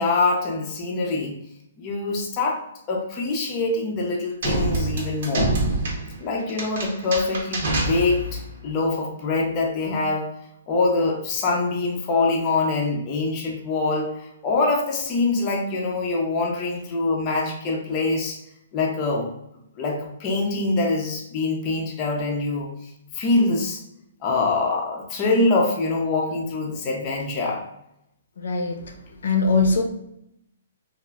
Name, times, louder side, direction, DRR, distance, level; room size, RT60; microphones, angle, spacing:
voice 1, 0.0-1.4 1.8-2.6 2.9-5.5 6.2-10.2 10.7-18.4 18.7-19.3 19.8-23.8 24.2-27.6, left 3 dB, 20° left, -2 dB, 0.4 m, -24 dB
sound 1, 4.4-8.5, right 2 dB, 50° right, 0.8 m, -26 dB
voice 2, 28.4-29.8, left 3 dB, 85° left, 4 dB, 0.5 m, -22 dB
3.0 x 2.4 x 2.3 m, 0.80 s
hypercardioid pair, 175°, 0 cm